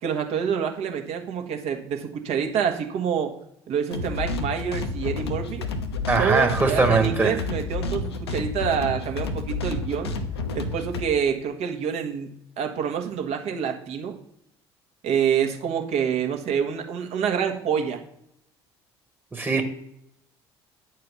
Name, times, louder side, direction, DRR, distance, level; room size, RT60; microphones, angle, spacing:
voice 1, 0.0-3.3 3.7-5.7 6.2-10.1 10.5-12.3 12.6-14.2 15.0-18.0, right 7 dB, 50° right, 1.5 m, -27 dB
sound 1, 3.9-11.0, left 3 dB, 75° left, 0.9 m, -30 dB
voice 2, 6.1-7.4 19.3-19.6, right 4 dB, 15° right, 1.5 m, -21 dB
9.2 x 4.7 x 6.9 m
figure-of-eight pair, 55°, 13 cm